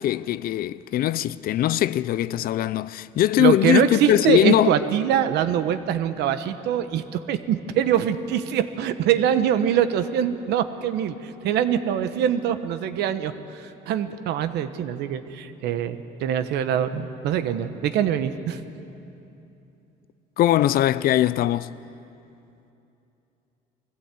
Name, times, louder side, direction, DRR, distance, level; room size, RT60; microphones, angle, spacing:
voice 1, 0.0-4.7 20.4-21.7, left 13 dB, 60° left, 0.5 m, -21 dB
voice 2, 3.4-18.6, right 9 dB, 80° right, 1.1 m, -24 dB
21.5 x 15.5 x 8.4 m
cardioid pair, 110°, 17 cm